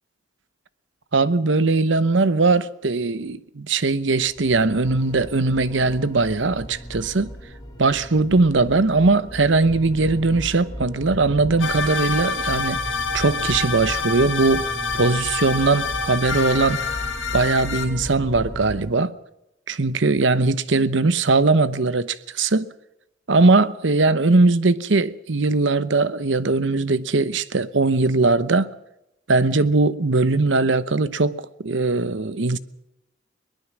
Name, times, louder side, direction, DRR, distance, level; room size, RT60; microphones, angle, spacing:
voice 1, 1.1-7.3 7.8-12.8 13.1-16.8 17.3-19.1 19.7-22.7 23.3-28.7 29.3-32.6, right 3 dB, 70° right, 0.9 m, -20 dB
sound 1, 4.2-18.8, equal, 20° left, 3.4 m, -36 dB
sound 2, 11.6-17.9, left 4 dB, 80° left, 3.4 m, -27 dB
22.0 x 20.0 x 6.2 m
head